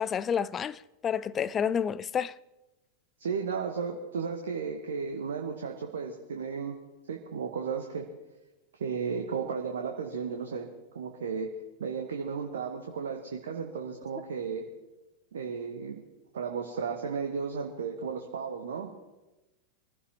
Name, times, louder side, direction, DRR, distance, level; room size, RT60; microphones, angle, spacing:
voice 1, 0.0-2.3, left 7 dB, 25° left, 0.4 m, -29 dB
voice 2, 3.2-6.8 7.1-8.1 8.8-10.7 10.9-11.5 11.8-14.6 15.3-16.0 16.3-18.9, right 6 dB, 65° right, 1.4 m, -34 dB
25.0 x 15.5 x 3.0 m
figure-of-eight pair, 90°, 0 cm